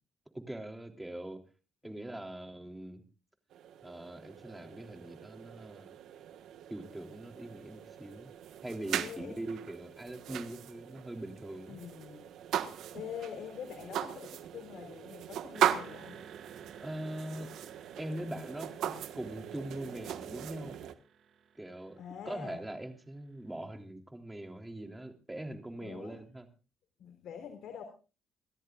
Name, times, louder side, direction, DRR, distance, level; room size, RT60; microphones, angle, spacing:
voice 1, 0.3-1.4 1.8-3.0 3.8-6.0 6.7-8.3 8.6-11.8 16.8-17.5 18.0-20.8 21.6-26.5, right 1 dB, 10° right, 4 dB, 3.4 m, -42 dB
sound 1, 3.5-20.9, right 10 dB, 80° right, 1.5 m, -39 dB
voice 2, 8.9-9.5 11.7-12.3 12.7-16.2 22.0-22.6 25.8-26.2 27.0-27.8, left 8 dB, 75° left, 5 dB, 3.7 m, -45 dB
sound 2, 15.5-23.3, right 7 dB, 65° right, 2.2 m, -56 dB
29.0 x 13.5 x 2.5 m, 0.34 s
cardioid pair, 90°, 0 cm